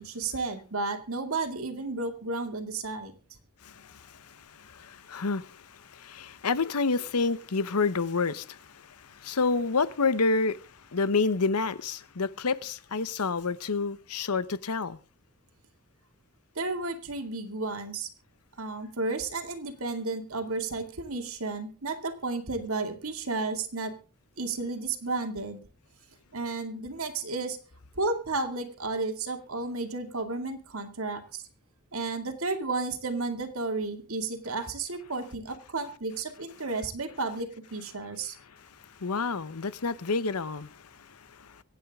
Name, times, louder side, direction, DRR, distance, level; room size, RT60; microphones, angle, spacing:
voice 1, 0.0-3.1 16.6-18.1 18.6-23.9 24.4-25.6 26.3-27.6 28.0-31.4 31.9-38.4, right 3 dB, 70° right, 2.2 m, -32 dB
voice 2, 3.6-10.6 10.9-15.0 39.0-41.6, left 4 dB, 85° left, 0.9 m, -29 dB
25.0 x 9.3 x 3.6 m
head